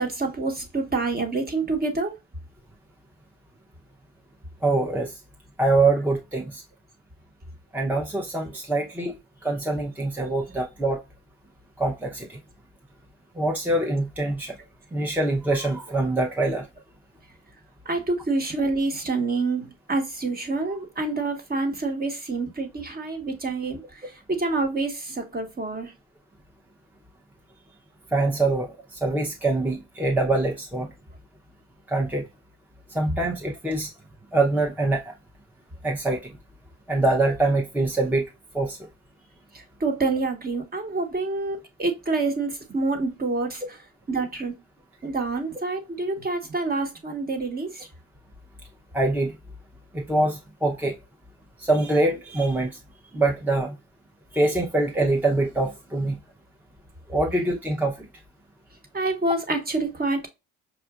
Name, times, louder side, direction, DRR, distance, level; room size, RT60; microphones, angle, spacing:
voice 1, 0.0-2.1 17.8-24.0 24.3-25.9 39.8-43.6 44.1-44.5 45.0-47.9 58.9-60.3, right 3 dB, 30° right, 1.2 m, -27 dB
voice 2, 4.6-5.1 5.6-6.6 7.7-11.0 11.8-12.4 13.4-14.5 14.9-16.7 28.1-30.9 31.9-32.3 32.9-33.9 34.3-35.1 35.8-36.3 36.9-38.2 38.5-38.8 48.9-49.3 49.9-50.9 51.6-52.8 53.1-53.7 54.3-56.2 57.1-57.9, right 2 dB, 5° right, 0.7 m, -24 dB
5.8 x 2.4 x 2.3 m
cardioid pair, 90°, 30 cm